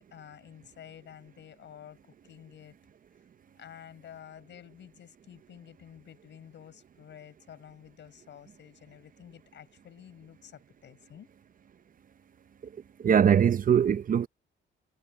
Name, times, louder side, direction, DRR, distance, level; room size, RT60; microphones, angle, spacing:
voice 1, 0.1-2.8 3.6-11.3, left 9 dB, 65° left, 6.1 m, -50 dB
voice 2, 13.0-14.3, right 8 dB, 45° right, 0.7 m, -21 dB
cardioid pair, 90°, 20 cm